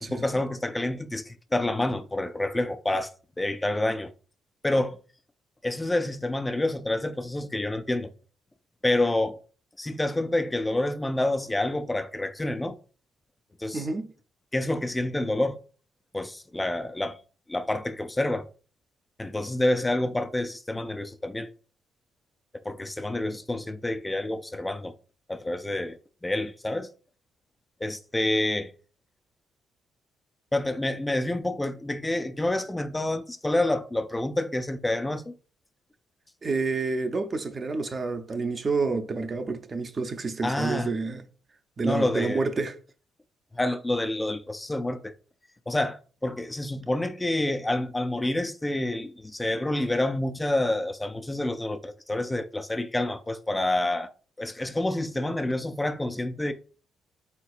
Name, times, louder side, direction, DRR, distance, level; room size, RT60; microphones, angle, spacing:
voice 1, 0.0-3.1 3.4-4.1 4.6-5.0 5.6-8.1 8.8-9.4 9.8-12.7 13.6-13.9 14.5-15.6 16.1-17.2 17.5-18.5 19.2-21.5 22.6-24.9 25.3-26.9 27.8-28.7 30.5-35.3 40.4-40.9 41.8-42.5 43.5-45.1 45.7-54.1 54.4-56.5, left 1 dB, 15° left, 0.3 m, -28 dB
voice 2, 13.7-14.1 36.4-41.2 41.8-42.8, right 4 dB, 35° right, 0.6 m, -29 dB
4.4 x 4.0 x 2.4 m
cardioid pair, 90°, 0 cm